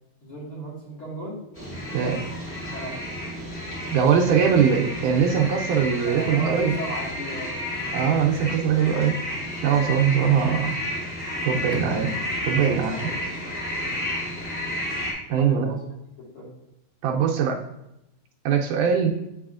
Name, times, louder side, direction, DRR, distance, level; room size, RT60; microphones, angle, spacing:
voice 1, 0.2-1.4 2.7-2.9 4.3-4.5 6.0-7.6 12.6-13.2 13.6-14.1 15.3-15.8 16.2-16.5, right 1 dB, 45° left, -6 dB, 2.3 m, -36 dB
sound 1, 1.5-15.1, left 1 dB, 20° left, 1.8 m, -31 dB
voice 2, 1.9-2.2 3.9-6.7 7.9-9.2 9.6-10.8 11.4-12.2 12.5-13.1 15.3-15.7 17.0-17.6 18.5-19.2, right 7 dB, 80° right, 1 dB, 2.0 m, -21 dB
Bowed string instrument, 11.7-15.2, left 6 dB, 80° left, 1.6 m, -43 dB
7.3 x 5.4 x 2.4 m, 0.86 s
omnidirectional pair, 3.8 m